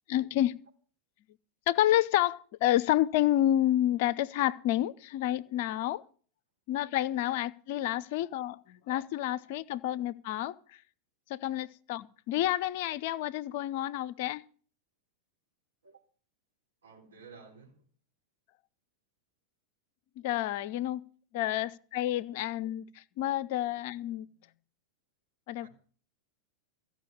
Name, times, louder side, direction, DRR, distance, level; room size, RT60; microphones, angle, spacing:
voice 1, 0.1-0.5 1.7-6.0 6.7-10.6 11.3-14.4 20.2-21.0 21.3-24.3 25.5-25.7, left 13 dB, 50° left, 0.6 m, -29 dB
voice 2, 16.8-17.8 25.6-25.7, right 5 dB, 70° right, 3.7 m, -53 dB
15.0 x 5.9 x 9.7 m
figure-of-eight pair, 90°, 0 cm